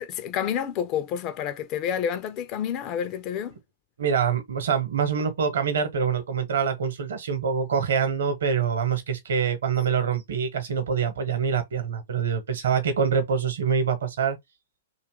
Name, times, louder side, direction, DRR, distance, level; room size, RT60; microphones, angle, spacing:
voice 1, 0.0-3.6, left 9 dB, 30° left, 0.4 m, -29 dB
voice 2, 4.0-14.4, right 6 dB, 55° right, 0.9 m, -25 dB
2.7 x 2.3 x 3.6 m
figure-of-eight pair, 110°, 0 cm